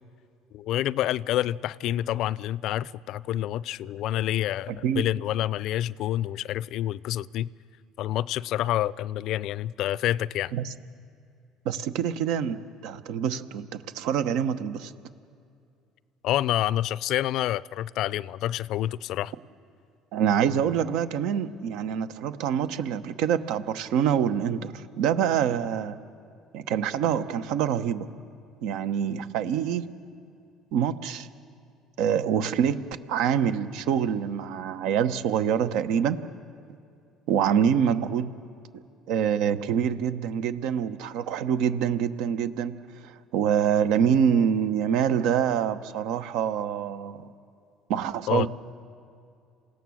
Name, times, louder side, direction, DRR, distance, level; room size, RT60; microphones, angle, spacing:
voice 1, 0.5-7.5 8.0-10.5 16.2-19.3 48.3-48.5, left 13 dB, 65° left, 0.4 m, -28 dB
voice 2, 11.6-14.9 20.1-26.0 26.5-28.1 28.6-29.9 30.7-31.3 32.0-32.8 33.1-36.2 37.3-38.3 38.7-38.8 39.1-42.7 43.0-47.3 47.9-48.5, right 8 dB, 75° right, 1.0 m, -26 dB
28.0 x 17.0 x 6.4 m
hypercardioid pair, 70°, 0 cm